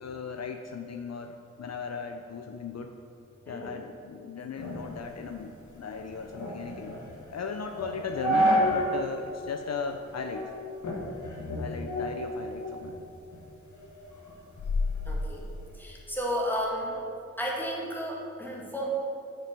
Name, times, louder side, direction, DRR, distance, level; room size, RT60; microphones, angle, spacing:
voice 1, 0.0-2.9 3.5-7.0 7.3-10.5 11.6-13.0, left 5 dB, 60° left, 5 dB, 0.5 m, -37 dB
voice 2, 3.5-3.8 15.1-15.4 15.7-17.0 17.4-18.9, equal, 5° left, -3 dB, 1.9 m, -33 dB
sound 1, 4.6-9.0 9.4-9.5 10.1-10.5 10.8-12.9 13.3-15.7, equal, 75° left, 1.5 m, -30 dB
7.4 x 5.1 x 6.0 m, 2.7 s
cardioid pair, 60°, 29 cm